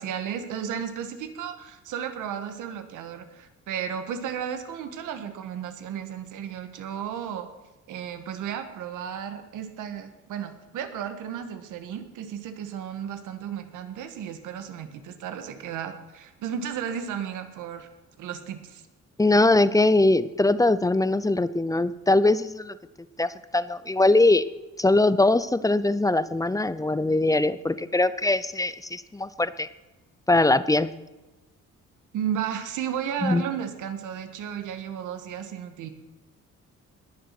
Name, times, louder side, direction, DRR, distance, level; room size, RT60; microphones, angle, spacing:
voice 1, 0.0-7.5 7.9-17.9 18.2-18.8 32.1-35.9, right 8 dB, 85° right, 8 dB, 1.7 m, -34 dB
voice 2, 19.2-22.7 23.2-24.4 24.8-29.7 30.3-30.9 33.2-33.4, left 2 dB, 10° left, 15 dB, 0.6 m, -21 dB
20.5 x 7.4 x 6.0 m, 1.1 s
cardioid pair, 90°, 30 cm